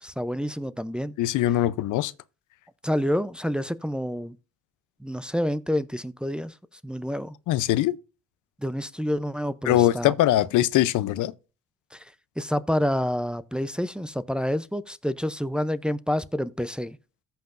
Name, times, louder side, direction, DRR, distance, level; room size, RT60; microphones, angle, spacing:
voice 1, 0.0-1.1 2.8-4.4 5.0-6.6 6.8-7.4 8.6-10.1 11.9-17.0, equal, 5° right, 0.5 m, -28 dB
voice 2, 1.2-2.1 7.5-8.0 9.7-11.3, left 14 dB, 85° left, 0.6 m, -22 dB
14.0 x 5.8 x 2.5 m
cardioid pair, 90°, 30 cm